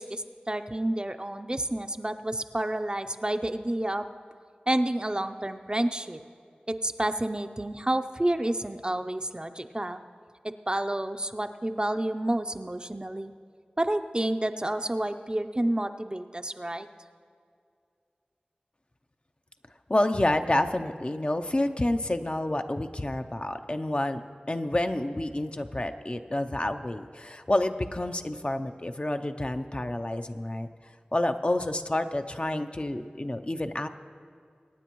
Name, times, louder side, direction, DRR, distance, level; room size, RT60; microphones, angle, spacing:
voice 1, 0.0-4.0 4.7-6.2 6.7-10.0 10.4-13.3 13.8-16.9, right 1 dB, 30° right, 8 dB, 0.5 m, -29 dB
voice 2, 19.9-24.2 24.5-30.7 31.1-33.9, left 1 dB, 35° left, 7 dB, 0.6 m, -29 dB
24.0 x 9.2 x 3.1 m, 2.3 s
wide cardioid pair, 40°, 3 cm